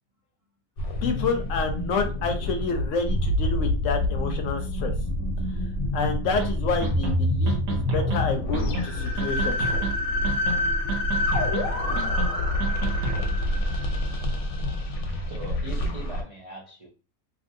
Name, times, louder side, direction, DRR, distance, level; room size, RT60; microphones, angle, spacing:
sound 1, 0.8-16.2, left 1 dB, 85° left, 1.2 m, -27 dB
voice 1, 1.0-4.9 5.9-9.7, left 4 dB, 70° left, 0.9 m, -29 dB
sound 2, 6.4-6.5 6.8-7.1 7.5-8.2 8.5-8.9 9.2-9.9 10.2-10.6 10.9-11.6 12.0-12.3 12.6-13.3, right 4 dB, 85° right, 1.2 m, -30 dB
voice 2, 15.3-16.9, right 2 dB, 55° right, 0.3 m, -40 dB
2.8 x 2.6 x 2.6 m
omnidirectional pair, 1.5 m